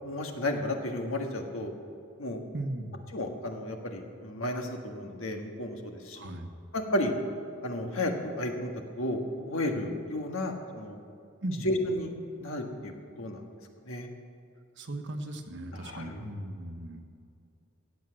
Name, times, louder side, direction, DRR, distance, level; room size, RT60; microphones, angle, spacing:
voice 1, 0.0-1.7 2.2-2.4 3.1-6.2 6.7-7.1 7.6-8.7 9.0-11.0 11.6-12.1 12.4-13.4 13.8-14.1 15.7-16.2, left 1 dB, 70° left, 3 dB, 1.7 m, -33 dB
voice 2, 2.5-3.0 6.1-6.5 11.4-11.7 14.8-17.0, right 1 dB, 60° right, 5 dB, 1.3 m, -37 dB
15.0 x 8.3 x 7.7 m, 2.5 s
head